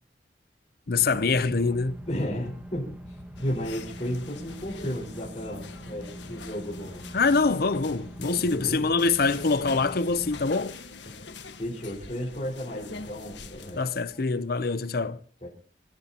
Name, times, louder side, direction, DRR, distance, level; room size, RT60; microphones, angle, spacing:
voice 1, 0.9-2.0 7.1-10.7 13.8-15.2, left 4 dB, 55° left, 0.7 m, -24 dB
sound 1, 1.0-10.5, equal, 5° right, 1.7 m, -43 dB
voice 2, 2.1-7.0 8.3-8.9 11.6-13.8 15.4-15.5, equal, 35° left, 5.0 m, -33 dB
sound 2, 3.4-14.5, left 4 dB, 80° left, 1.5 m, -45 dB
27.0 x 15.0 x 2.9 m
head